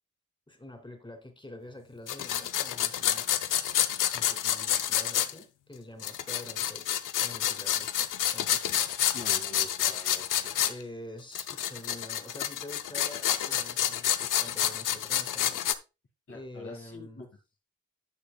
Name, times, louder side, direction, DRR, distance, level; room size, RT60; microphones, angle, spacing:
voice 1, 0.5-3.3 4.1-9.0 10.7-15.6 16.3-17.3, left 1 dB, 15° left, 5 dB, 2.8 m, -46 dB
sound 1, 2.1-5.3 6.0-10.7 11.3-15.7, left 11 dB, 85° left, 0.7 m, -29 dB
voice 2, 9.1-10.3 10.5-10.7 16.3-17.3, left 2 dB, 45° left, 0 dB, 2.0 m, -45 dB
13.0 x 6.9 x 2.3 m, 0.28 s
cardioid pair, 50°, 31 cm